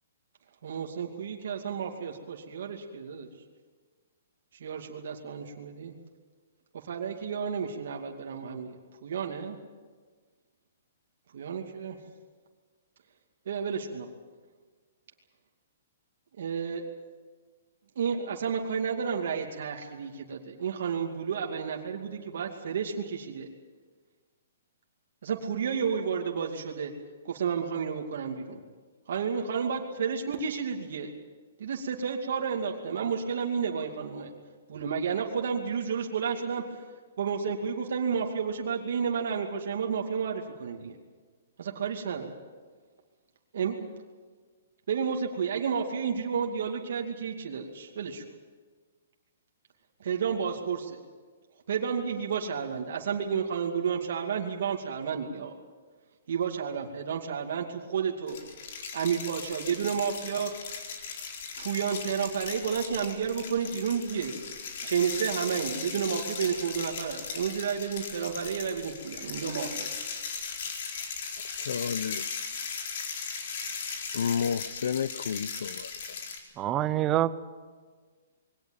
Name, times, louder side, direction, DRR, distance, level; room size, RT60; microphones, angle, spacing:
voice 1, 0.6-3.3 4.5-5.9 6.9-8.8 9.0-9.6 11.3-12.0 13.5-14.1 16.4-16.8 18.0-23.5 25.2-26.9 27.2-28.6 29.1-31.1 31.6-34.3 34.7-36.6 37.2-41.0 41.6-42.4 43.5-43.9 44.9-48.2 50.0-51.0 51.7-55.6 56.3-58.4 58.9-60.5 61.6-64.4 64.8-69.9, right 6 dB, 65° right, 2.5 m, -31 dB
sound 1, 58.3-76.4, left 5 dB, 55° left, 4.1 m, -38 dB
voice 2, 71.4-72.5 74.1-75.9, left 7 dB, 75° left, 0.8 m, -31 dB
voice 3, 76.6-77.4, right 13 dB, 20° right, 0.8 m, -26 dB
21.5 x 18.0 x 8.8 m
hypercardioid pair, 160°, 0 cm